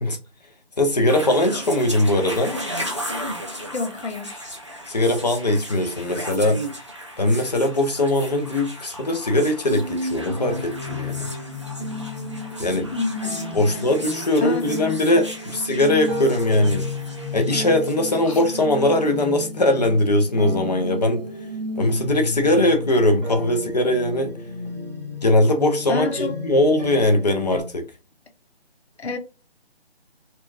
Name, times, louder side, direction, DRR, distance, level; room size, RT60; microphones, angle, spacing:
voice 1, 0.8-2.6 4.9-6.6 7.2-11.3 12.6-12.9 13.5-16.9 17.3-21.2 21.8-24.4 25.2-27.9, left 1 dB, 40° left, 0.8 m, -20 dB
sound 1, 1.1-19.1, equal, 30° right, 0.4 m, -36 dB
voice 2, 3.7-4.5 12.9-14.1 14.4-14.7 18.3-18.4 25.9-26.4 29.0-29.2, left 3 dB, 80° left, 1.0 m, -28 dB
sound 2, 9.6-27.6, left 2 dB, 10° left, 0.8 m, -32 dB
4.3 x 2.4 x 2.6 m
figure-of-eight pair, 170°, 32 cm